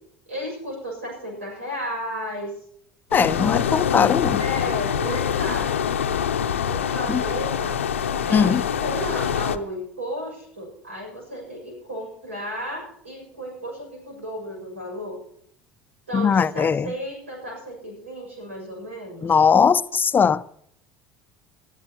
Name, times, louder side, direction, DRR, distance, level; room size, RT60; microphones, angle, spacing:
voice 1, 0.3-2.5 4.4-5.8 6.6-7.8 8.2-15.2 16.1-19.3, equal, 90° right, 6.7 m, -33 dB
sound 1, 3.1-9.6, left 8 dB, 85° left, 0.7 m, -25 dB
voice 2, 3.1-4.4 7.1-7.2 8.3-8.6 16.1-16.9 19.2-20.5, left 6 dB, 30° left, 0.6 m, -19 dB
21.0 x 12.0 x 3.0 m
hypercardioid pair, 65°, 7 cm